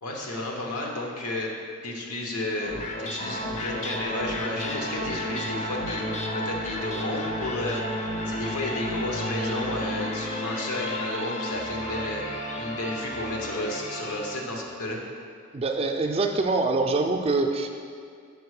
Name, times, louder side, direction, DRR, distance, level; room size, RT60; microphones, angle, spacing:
voice 1, 0.0-1.5 1.8-6.1 6.3-12.2 12.6-15.0, left 1 dB, 90° left, 0 dB, 0.9 m, -32 dB
sound 1, 2.5-14.8, left 1 dB, 30° left, 0.5 m, -32 dB
voice 2, 15.5-17.7, right 3 dB, 25° right, 4 dB, 0.3 m, -24 dB
5.1 x 5.0 x 4.8 m, 2.2 s
head